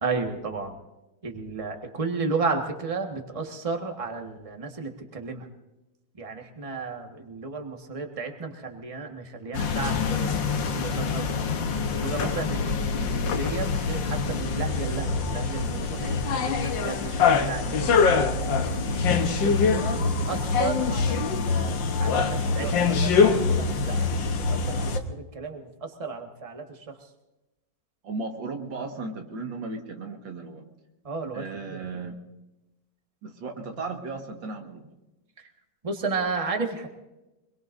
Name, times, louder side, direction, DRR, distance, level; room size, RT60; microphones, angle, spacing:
voice 1, 0.0-0.8 1.2-5.5 6.2-11.3 11.9-18.0 19.1-22.7 22.9-24.1 24.5-27.0 31.0-31.8 35.8-36.9, right 4 dB, 20° right, 3 dB, 1.5 m, -33 dB
sound 1, 9.5-25.0, left 5 dB, 80° left, 1.8 m, -24 dB
voice 2, 28.0-30.6 31.3-32.2 33.2-34.9, right 3 dB, 85° right, 3 dB, 2.4 m, -35 dB
25.0 x 22.0 x 2.6 m, 1.0 s
omnidirectional pair, 2.0 m